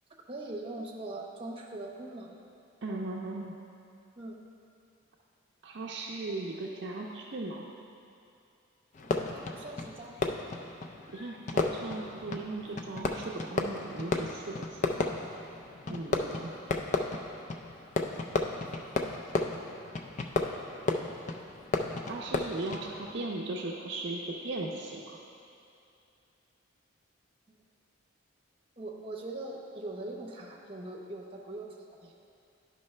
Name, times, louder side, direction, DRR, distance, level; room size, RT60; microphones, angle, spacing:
voice 1, 0.3-2.4 4.2-4.4 9.0-10.3 15.8-16.0 28.8-32.1, right 2 dB, 25° right, -2 dB, 0.8 m, -41 dB
voice 2, 2.8-3.5 5.6-7.7 11.1-14.8 15.9-16.5 22.0-25.2, right 2 dB, 55° right, -2 dB, 0.5 m, -37 dB
Fireworks, 8.9-23.2, left 3 dB, 35° left, 0.4 m, -34 dB
11.0 x 5.3 x 3.2 m, 2.6 s
head